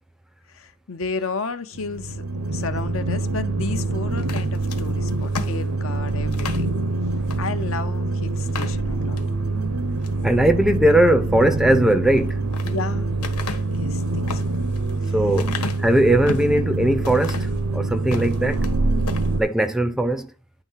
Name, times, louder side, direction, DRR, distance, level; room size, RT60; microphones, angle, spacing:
voice 1, 0.5-2.2 2.5-6.8 7.4-9.2 12.6-13.1 13.7-14.5 15.0-15.1, left 4 dB, 60° left, 0.7 m, -32 dB
creepy or suspenseful ambiance, 1.7-19.4, right 2 dB, 85° right, 0.8 m, -25 dB
sound 1, 4.2-6.7 7.2-7.4 7.8-7.9 8.4-9.3 9.8-10.2 12.0-12.8 13.2-16.6 17.0-17.6 18.0-18.7 19.0-19.3, left 4 dB, 85° left, 1.3 m, -34 dB
voice 2, 10.2-12.4 15.1-17.5 17.7-18.6 19.4-20.3, right 1 dB, ahead, 0.5 m, -19 dB
9.9 x 3.6 x 5.5 m
head